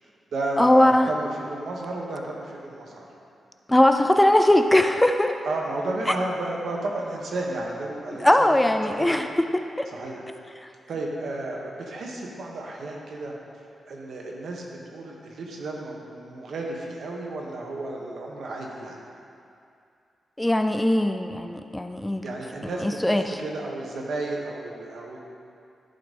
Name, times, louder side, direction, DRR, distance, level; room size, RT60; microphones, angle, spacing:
voice 1, 0.0-3.1 5.4-8.5 8.9-9.2 9.9-10.3 10.9-19.0 22.2-25.2, right 2 dB, 70° right, -1 dB, 1.3 m, -33 dB
voice 2, 0.6-1.1 3.7-5.3 8.2-9.3 9.8-9.9 20.4-22.2 22.8-23.4, left 1 dB, 10° left, 6 dB, 0.3 m, -20 dB
11.5 x 4.0 x 5.3 m, 2.5 s
wide cardioid pair, 125°, 0 cm